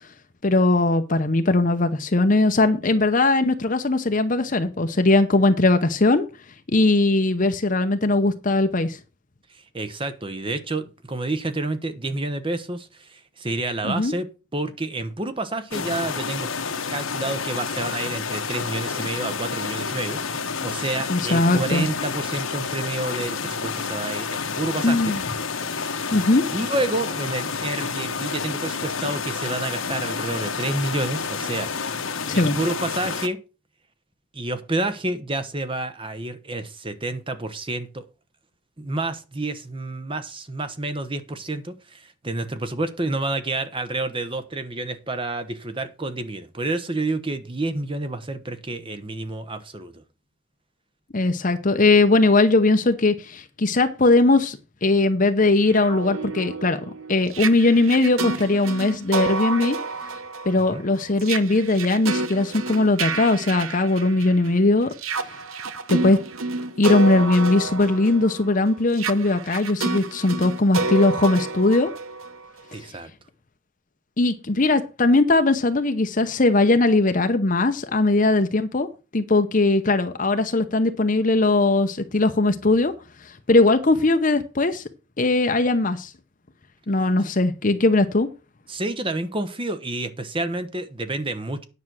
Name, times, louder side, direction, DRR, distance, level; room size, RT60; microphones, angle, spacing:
voice 1, 0.4-6.3 6.7-9.0 13.8-14.1 21.1-21.9 24.8-25.2 26.1-26.4 32.3-32.6 51.1-56.8 57.1-59.8 60.5-64.9 65.2-65.3 65.9-66.2 66.8-71.9 74.2-78.9 79.1-82.9 83.2-84.8 85.2-86.1 86.9-88.3, left 2 dB, 40° left, 0.8 m, -19 dB
voice 2, 9.5-14.3 14.5-16.5 16.9-25.1 25.6-26.2 26.5-31.7 32.3-33.4 34.3-38.0 38.8-50.0 60.7-60.8 72.7-73.1 88.7-91.6, right 2 dB, 25° right, 1.0 m, -29 dB
sound 1, 15.7-33.3, left 5 dB, 80° left, 1.3 m, -29 dB
sound 2, 55.6-64.5 64.9-72.7, right 4 dB, 85° right, 0.9 m, -29 dB
9.7 x 6.2 x 6.1 m
head